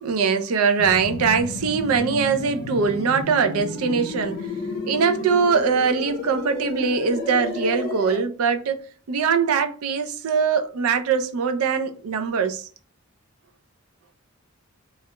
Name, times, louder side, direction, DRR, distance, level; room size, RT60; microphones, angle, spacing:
voice 1, 0.0-4.5 4.9-12.7, right 5 dB, 85° right, 0.4 m, -22 dB
sound 1, 0.8-8.2, left 2 dB, 45° left, 0.5 m, -32 dB
2.3 x 2.1 x 2.9 m
head